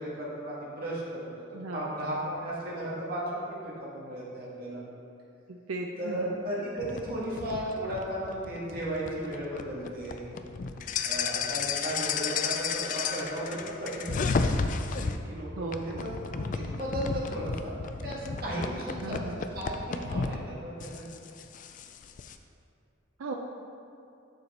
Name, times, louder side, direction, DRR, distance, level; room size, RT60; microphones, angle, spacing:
voice 1, 0.0-1.4 1.7-4.8 6.0-10.2 11.0-14.3 14.9-19.2 19.5-21.1, right 1 dB, 45° right, -6 dB, 1.7 m, -35 dB
voice 2, 1.5-2.1 5.5-6.4 15.6-16.2 19.0-19.4 23.2-23.3, right 2 dB, 85° right, 1 dB, 0.5 m, -37 dB
sound 1, 6.8-15.2 15.7-20.4 20.8-22.4, left 5 dB, 40° left, 0.3 m, -33 dB
6.9 x 6.9 x 4.2 m, 2.6 s
head